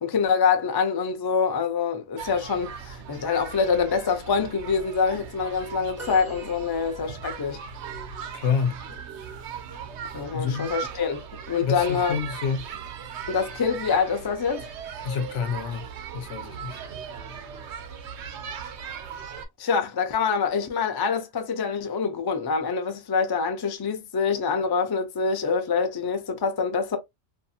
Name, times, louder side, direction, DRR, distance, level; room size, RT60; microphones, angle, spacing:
voice 1, 0.0-7.6 10.1-11.2 11.5-12.2 13.3-14.7 19.6-27.0, left 5 dB, 40° left, 0.3 m, -25 dB
sound 1, 2.2-19.5, right 7 dB, 75° right, 0.9 m, -38 dB
sound 2, 6.0-7.4 9.8-10.0 11.3-11.4, right 1 dB, 20° right, 0.5 m, -45 dB
voice 2, 8.3-8.8 10.3-10.7 11.6-12.7 15.0-15.8 16.1-16.8, left 6 dB, 85° left, 1.0 m, -28 dB
2.7 x 2.5 x 2.4 m
omnidirectional pair, 1.2 m